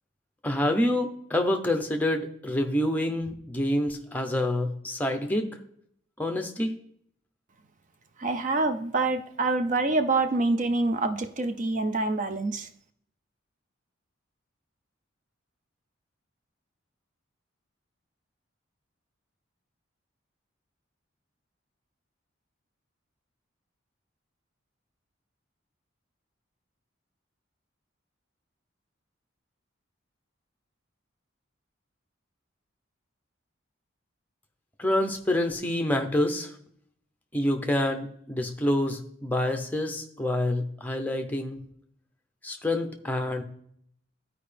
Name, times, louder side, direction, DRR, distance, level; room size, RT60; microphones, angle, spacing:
voice 1, 0.4-5.6 6.2-6.7 34.8-36.5 37.3-41.6 42.4-43.4, left 1 dB, 10° left, 4 dB, 0.7 m, -27 dB
voice 2, 8.2-12.7, right 2 dB, 40° right, 8 dB, 0.4 m, -26 dB
12.0 x 4.8 x 3.3 m, 0.66 s
head